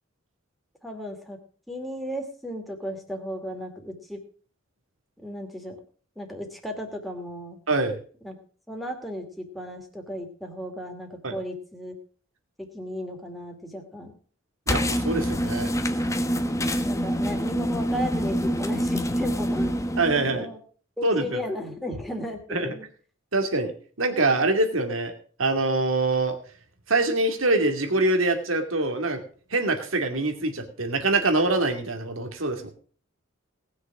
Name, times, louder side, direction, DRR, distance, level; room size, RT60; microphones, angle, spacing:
voice 1, 0.8-1.4 1.7-4.2 5.2-5.8 6.2-7.6 8.2-8.4 8.7-12.0 12.6-14.2 16.8-19.8 20.1-20.6 21.0-22.9, equal, ahead, 2 dB, 2.5 m, -35 dB
voice 2, 7.7-8.0 11.2-11.4 14.7-15.7 20.0-20.5 21.0-21.2 22.5-22.7 23.3-23.7 24.0-25.1 25.4-26.3 26.9-29.2 29.5-32.7, right 2 dB, 85° right, 6 dB, 2.4 m, -24 dB
sound 1, 14.7-20.4, equal, 15° left, 1.1 m, -26 dB
18.5 x 6.6 x 6.1 m, 0.43 s
head